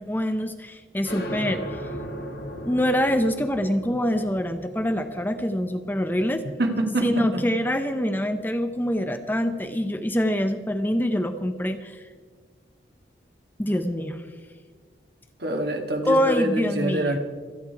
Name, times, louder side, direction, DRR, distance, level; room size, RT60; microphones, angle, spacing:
voice 1, 0.0-1.8 2.6-6.4 7.0-12.1 13.6-14.2 16.0-17.2, equal, 10° left, 8 dB, 0.6 m, -25 dB
sound 1, 1.0-8.3, equal, 65° left, 1.6 m, -38 dB
voice 2, 6.6-7.4 15.4-17.2, right 1 dB, 65° right, 3 dB, 1.9 m, -25 dB
26.0 x 8.8 x 4.7 m, 1.5 s
head